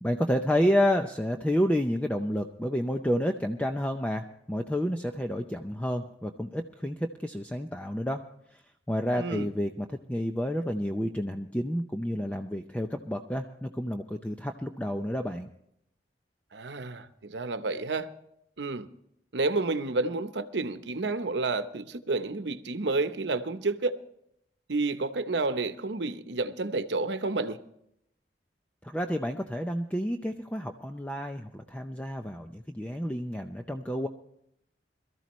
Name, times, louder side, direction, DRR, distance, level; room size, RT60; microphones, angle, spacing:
voice 1, 0.0-8.2 8.5-8.6 8.9-15.5 28.8-34.1, equal, 10° left, 0.6 m, -30 dB
voice 2, 9.1-9.5 16.5-18.1 18.6-18.9 19.3-23.9 24.7-27.6, right 3 dB, 90° right, 0.9 m, -30 dB
22.5 x 13.5 x 3.1 m
head